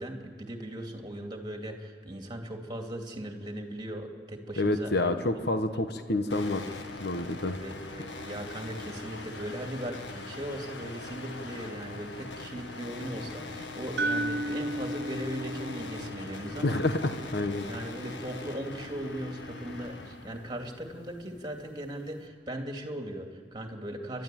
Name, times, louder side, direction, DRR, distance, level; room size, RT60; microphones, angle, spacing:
voice 1, 0.0-5.4 7.4-16.8 17.7-24.2, right 1 dB, 25° right, 3 dB, 2.5 m, -38 dB
voice 2, 4.6-6.6 7.0-7.6 16.6-17.6, left 2 dB, 65° left, 8 dB, 1.2 m, -28 dB
sound 1, 6.3-22.3, left 3 dB, 85° left, 1.7 m, -42 dB
sound 2, 14.0-18.0, right 1 dB, 75° right, 0.9 m, -35 dB
30.0 x 12.5 x 9.2 m, 2.1 s
head